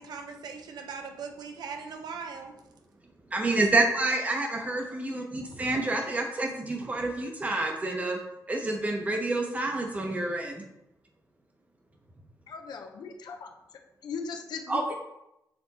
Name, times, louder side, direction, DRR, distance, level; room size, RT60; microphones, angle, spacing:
voice 1, 0.0-2.6, right 5 dB, 75° right, 5 dB, 0.8 m, -40 dB
voice 2, 3.3-8.2 8.5-10.6 14.7-14.9, right 2 dB, 20° right, 2 dB, 0.9 m, -28 dB
voice 3, 12.5-13.5 14.0-14.9, left 5 dB, 80° left, 4 dB, 0.8 m, -38 dB
6.8 x 3.4 x 4.1 m, 0.87 s
wide cardioid pair, 155°, 7 cm